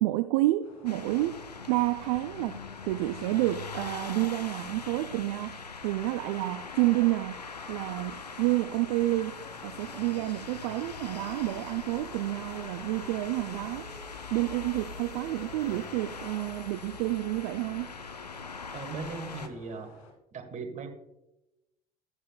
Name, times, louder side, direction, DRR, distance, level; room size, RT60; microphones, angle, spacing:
voice 1, 0.0-1.4 1.7-2.6 2.9-5.6 5.8-7.4 7.7-13.9 14.3-17.9, right 17 dB, 65° right, 0.4 m, -29 dB
sound 1, 0.6-20.1, left 3 dB, 65° left, 2.4 m, -55 dB
sound 2, 0.9-19.5, left 5 dB, 90° left, 0.6 m, -42 dB
sound 3, 9.0-16.4, left 2 dB, 15° left, 1.5 m, -52 dB
voice 2, 18.7-19.9 20.3-20.9, right 4 dB, 35° right, 1.6 m, -38 dB
13.5 x 9.8 x 2.3 m
figure-of-eight pair, 55°, 20 cm